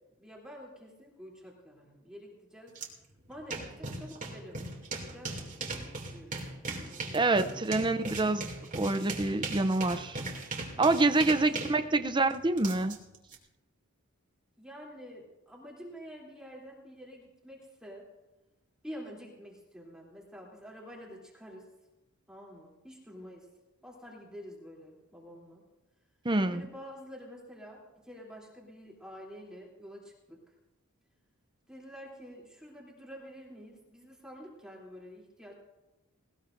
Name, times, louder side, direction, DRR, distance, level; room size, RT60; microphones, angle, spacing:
voice 1, 0.2-2.8 3.3-4.7 5.0-7.8 11.2-11.6 11.8-12.0 14.6-18.1 18.8-21.7 22.3-23.5 23.8-25.6 26.5-30.4 31.7-35.5, equal, 5° right, -4 dB, 3.2 m, -48 dB
sound 1, 2.8-2.9 3.2-13.4, right 3 dB, 35° right, 2.7 m, -39 dB
voice 2, 7.1-8.5 8.7-10.2 10.8-13.0 26.2-26.7, right 2 dB, 20° right, 9 dB, 0.6 m, -26 dB
19.5 x 19.5 x 2.6 m, 1.0 s
head